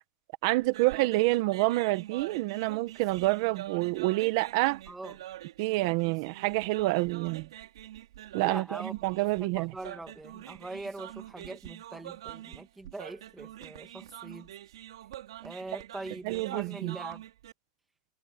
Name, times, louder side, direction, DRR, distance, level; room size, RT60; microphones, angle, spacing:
voice 1, 0.4-4.8 5.6-7.5 8.3-9.7 16.2-17.0, right 20 dB, 45° right, 1.3 m, -28 dB
sound 1, 0.6-17.5, right 13 dB, 80° right, 4.1 m, -45 dB
voice 2, 8.4-8.9 9.4-14.5 15.4-17.2, right 2 dB, 5° right, 2.2 m, -42 dB
supercardioid pair, 165°, 3 cm